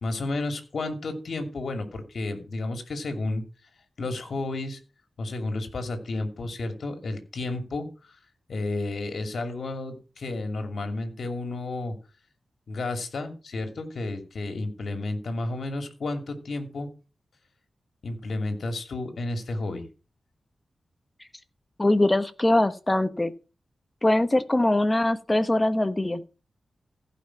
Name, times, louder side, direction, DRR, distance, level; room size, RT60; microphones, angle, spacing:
voice 1, 0.0-3.4 4.0-4.8 5.2-8.2 8.5-12.0 12.7-16.9 18.0-19.9, left 2 dB, 70° left, 7 dB, 2.5 m, -32 dB
voice 2, 21.8-23.3 24.0-26.2, left 1 dB, 20° left, 12 dB, 1.0 m, -22 dB
15.0 x 5.6 x 5.9 m, 0.33 s
wide cardioid pair, 90°, 0 cm